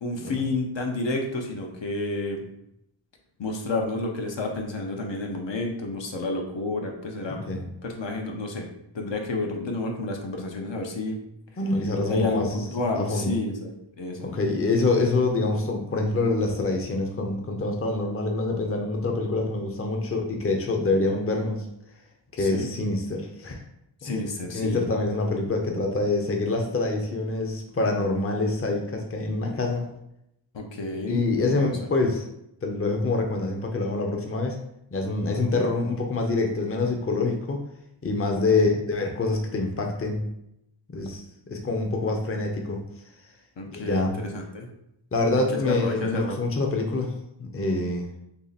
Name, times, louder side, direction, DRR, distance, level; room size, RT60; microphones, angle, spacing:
voice 1, 0.0-2.4 3.4-7.4 7.8-8.7 8.9-11.2 12.1-14.4 22.4-22.7 24.0-24.8 30.5-31.7 35.2-35.6 38.5-38.8 43.6-44.7 45.6-46.4, left 2 dB, 65° left, 2 dB, 0.8 m, -30 dB
voice 2, 7.3-7.7 11.6-13.3 14.2-21.7 22.3-23.6 24.0-24.2 24.5-29.9 31.1-32.2 32.6-34.6 34.9-37.6 38.0-40.2 40.9-42.8 43.7-44.2 45.1-47.1 47.4-48.1, left 3 dB, 30° left, 2 dB, 0.7 m, -26 dB
2.9 x 2.8 x 4.0 m, 0.79 s
cardioid pair, 50°, 48 cm